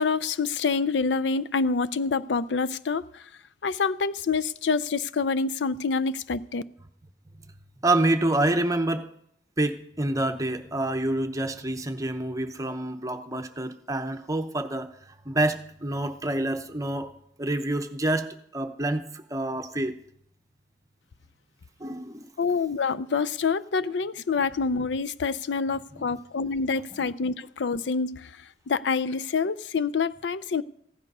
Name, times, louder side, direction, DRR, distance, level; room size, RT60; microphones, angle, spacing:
voice 1, 0.0-3.0 3.6-6.6 22.4-28.3 28.7-30.6, left 5 dB, 90° left, 0.5 m, -26 dB
voice 2, 7.8-9.1 9.6-14.9 15.3-17.1 17.4-18.3 18.5-20.0 21.8-22.3 25.9-26.2 26.9-27.1, right 1 dB, 20° right, 0.8 m, -27 dB
15.5 x 10.5 x 5.4 m
head